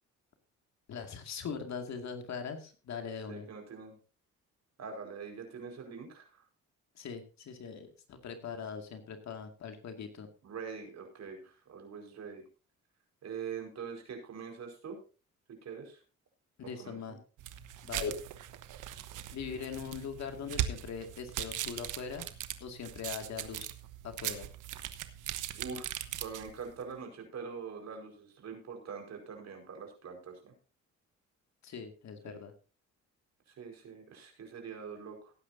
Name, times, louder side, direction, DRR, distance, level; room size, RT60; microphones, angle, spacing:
voice 1, 0.9-3.5 7.0-10.3 16.6-17.2 17.8-18.1 19.3-22.3 22.6-23.7 24.0-24.5 31.6-32.5, left 6 dB, 65° left, 6 dB, 2.2 m, -41 dB
voice 2, 3.3-4.0 4.8-6.4 10.4-12.4 13.2-15.0 15.6-16.0 16.6-17.2 17.9-18.0 25.5-30.5 32.2-32.4 33.6-35.3, right 6 dB, 60° right, 4 dB, 4.8 m, -44 dB
sound 1, 17.4-26.7, right 11 dB, 85° right, 1.1 m, -40 dB
18.5 x 9.8 x 2.7 m, 0.33 s
cardioid pair, 90°, 30 cm